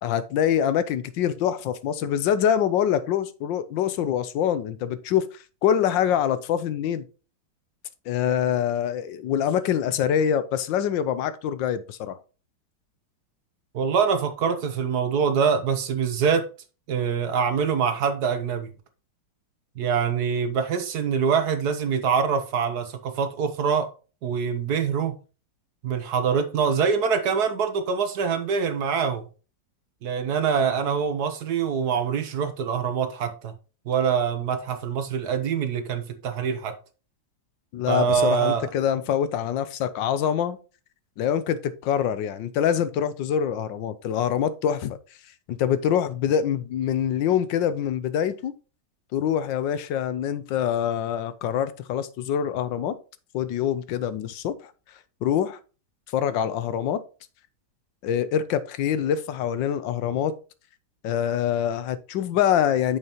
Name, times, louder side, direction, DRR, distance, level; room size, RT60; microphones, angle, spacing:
voice 1, 0.0-5.3 5.6-7.0 8.1-12.2 37.7-40.6 41.2-45.0 45.5-48.5 49.1-52.9 53.3-54.7 55.2-55.6 56.1-57.0 58.0-60.3 61.0-63.0, left 9 dB, 80° left, 1.4 m, -25 dB
voice 2, 13.7-16.4 16.9-18.7 19.8-23.9 24.2-25.1 25.8-29.2 30.0-33.5 33.9-36.7 37.9-38.7, right 6 dB, 60° right, 1.4 m, -24 dB
8.9 x 6.7 x 2.9 m
omnidirectional pair, 2.0 m